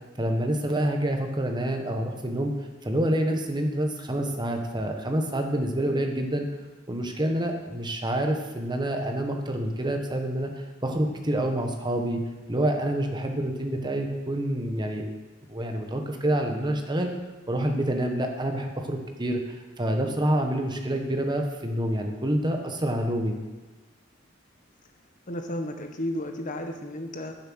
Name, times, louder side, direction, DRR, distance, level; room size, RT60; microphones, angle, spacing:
voice 1, 0.2-2.5 2.8-6.5 6.9-12.2 12.5-15.0 15.5-17.1 17.5-23.4, right 1 dB, 20° right, 4 dB, 1.2 m, -27 dB
voice 2, 25.3-27.3, left 1 dB, 40° left, 4 dB, 1.2 m, -33 dB
10.0 x 7.2 x 6.3 m, 1.2 s
head